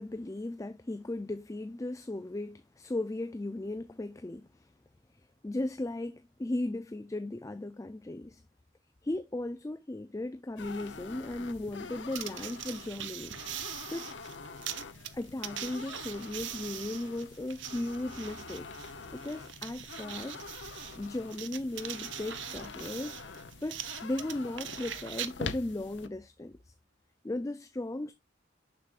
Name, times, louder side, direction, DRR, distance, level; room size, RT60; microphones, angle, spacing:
voice 1, 0.0-4.7 5.2-8.4 9.0-13.4 13.9-14.1 15.1-20.4 21.0-23.2 23.6-26.7 27.2-28.1, left 1 dB, 15° left, 0.4 m, -37 dB
sound 1, 10.6-26.1, left 4 dB, 65° left, 0.8 m, -45 dB
sound 2, 12.1-25.3, right 11 dB, 70° right, 0.7 m, -42 dB
6.8 x 6.4 x 2.4 m
head